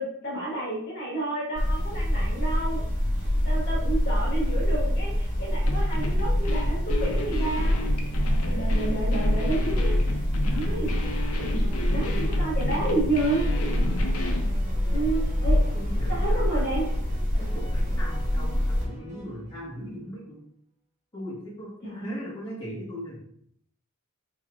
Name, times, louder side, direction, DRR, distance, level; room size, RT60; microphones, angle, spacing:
voice 1, 0.0-2.8 3.4-7.8 8.4-10.1 10.4-13.8 14.9-15.6 16.1-16.9 21.8-22.2, right 2 dB, 50° left, -5 dB, 1.8 m, -31 dB
sound 1, 1.5-18.8, equal, 55° right, 1.8 m, -25 dB
sound 2, 5.6-14.5, left 1 dB, 75° left, 0.7 m, -34 dB
sound 3, 13.3-20.0, left 1 dB, 30° right, 1.1 m, -45 dB
voice 2, 15.5-16.6 17.4-20.5 21.1-23.2, equal, 20° left, -7 dB, 1.4 m, -39 dB
4.5 x 4.3 x 2.5 m, 0.67 s
head